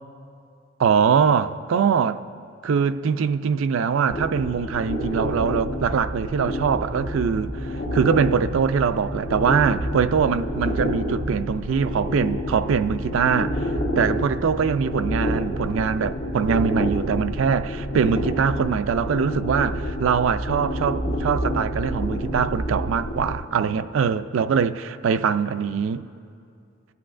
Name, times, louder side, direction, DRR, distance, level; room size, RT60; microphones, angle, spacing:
voice 1, 0.8-2.2 2.6-13.7 14.0-26.0, right 6 dB, 75° right, 0.4 m, -23 dB
sound 1, 4.1-23.3, equal, 65° left, 1.2 m, -28 dB
24.0 x 8.3 x 2.5 m
head